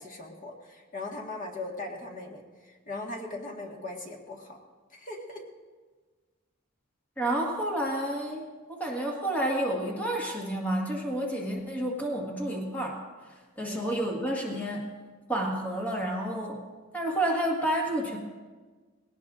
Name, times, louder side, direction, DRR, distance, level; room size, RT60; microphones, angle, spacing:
voice 1, 0.0-4.6 4.9-5.4 13.6-13.9, left 2 dB, 40° left, 0 dB, 1.6 m, -39 dB
voice 2, 7.2-13.0 13.6-14.8 15.3-16.6 16.9-18.2, right 1 dB, 10° left, -1 dB, 1.6 m, -30 dB
20.0 x 17.5 x 2.5 m, 1.4 s
head